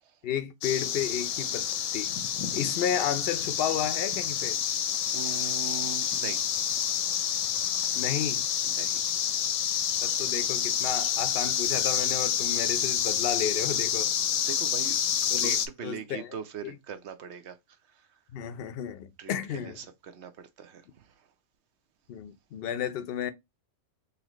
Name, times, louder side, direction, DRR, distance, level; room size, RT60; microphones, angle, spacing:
voice 1, 0.2-2.2 2.5-4.6 7.9-8.5 10.0-14.1 15.3-15.5 15.8-16.3 16.6-16.7 18.3-19.8 22.1-23.3, left 9 dB, 60° left, 0.7 m, -32 dB
sound 1, 0.6-15.7, left 9 dB, 85° left, 1.0 m, -28 dB
voice 2, 2.5-2.8 5.1-6.8 8.6-9.0 14.5-15.0 15.4-18.2 19.2-21.3, right 7 dB, 65° right, 0.9 m, -41 dB
4.1 x 2.8 x 3.0 m
omnidirectional pair, 1.3 m